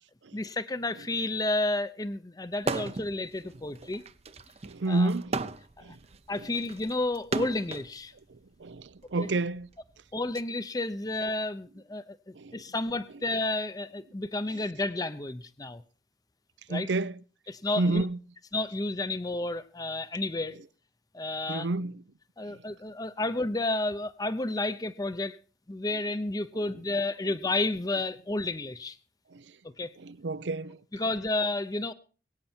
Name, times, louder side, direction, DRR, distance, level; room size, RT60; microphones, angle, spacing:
voice 1, 0.3-4.0 4.9-5.1 5.8-6.0 6.3-8.1 9.2-9.3 10.1-15.8 16.7-16.9 17.5-18.0 18.5-20.6 21.1-21.7 22.4-25.4 25.7-29.0 29.6-29.9 30.9-31.9, left 2 dB, 20° left, 0.6 m, -31 dB
sound 1, 2.6-3.1 3.5-7.9 8.8-10.4, right 3 dB, 35° right, 0.7 m, -35 dB
voice 2, 4.6-5.5 5.8-6.0 6.3-6.5 8.3-9.7 12.3-12.7 14.5-14.6 16.7-17.2 17.8-18.2 21.5-22.0 22.4-22.6 25.9-26.0 26.5-26.7 27.3-27.4 29.3-29.6 30.0-30.8, right 2 dB, 85° right, 0.7 m, -31 dB
23.0 x 9.0 x 4.4 m
head